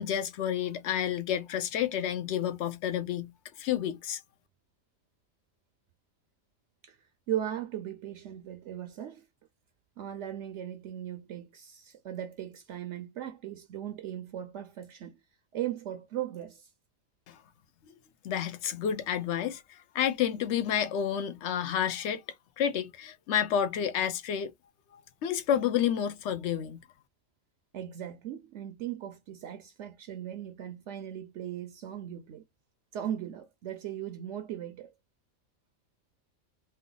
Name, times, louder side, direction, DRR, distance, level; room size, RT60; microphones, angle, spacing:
voice 1, 0.0-3.3 3.6-4.2 17.3-17.4 18.2-22.2 22.6-24.5 25.2-26.8, left 9 dB, 65° left, 0.9 m, -30 dB
voice 2, 7.3-9.2 10.0-15.2 15.5-16.7 27.7-32.4 32.9-34.9, right 11 dB, 70° right, 0.9 m, -38 dB
3.2 x 2.0 x 3.8 m
omnidirectional pair, 1.3 m